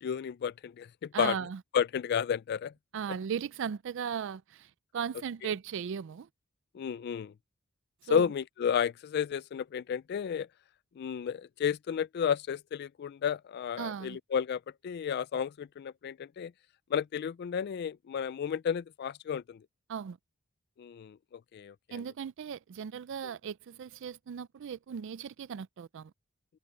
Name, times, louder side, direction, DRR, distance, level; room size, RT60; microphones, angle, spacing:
voice 1, 0.0-1.4 1.7-2.7 5.4-5.5 6.7-7.3 8.1-10.5 11.0-16.5 16.9-19.6 20.8-21.2 21.5-22.0, left 8 dB, 50° left, 0.3 m, -32 dB
voice 2, 1.1-1.6 2.9-6.3 8.1-8.2 13.8-14.2 19.9-20.2 21.9-26.1, right 7 dB, 60° right, 0.4 m, -37 dB
head